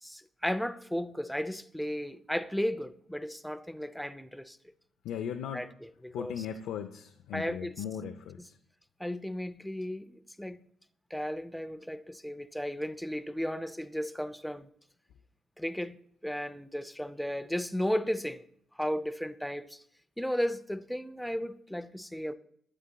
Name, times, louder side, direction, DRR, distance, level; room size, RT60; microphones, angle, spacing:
voice 1, 0.0-4.6 5.5-5.7 6.0-6.5 7.3-7.7 9.0-10.6 11.1-14.7 15.6-18.4 18.8-19.8 20.2-22.3, equal, 5° left, 0.4 m, -34 dB
voice 2, 5.0-5.7 6.1-8.6, left 8 dB, 85° left, 0.4 m, -38 dB
11.5 x 7.9 x 2.2 m
cardioid pair, 90°, 0 cm